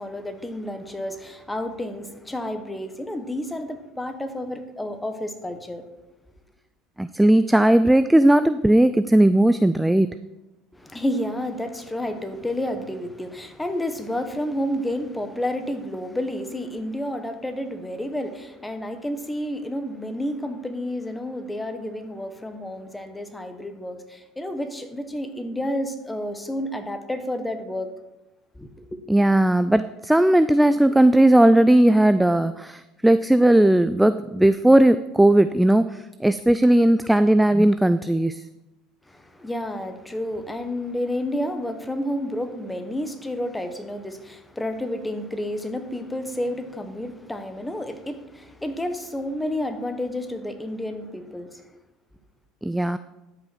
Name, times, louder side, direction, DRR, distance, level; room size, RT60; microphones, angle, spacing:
voice 1, 0.0-5.8 10.7-27.9 28.5-28.7 39.1-51.6, left 1 dB, 10° left, 1.2 m, -30 dB
voice 2, 7.0-10.1 29.1-38.4 52.6-53.0, right 1 dB, 5° right, 0.3 m, -17 dB
12.5 x 5.6 x 4.5 m
supercardioid pair, 90°, 0 cm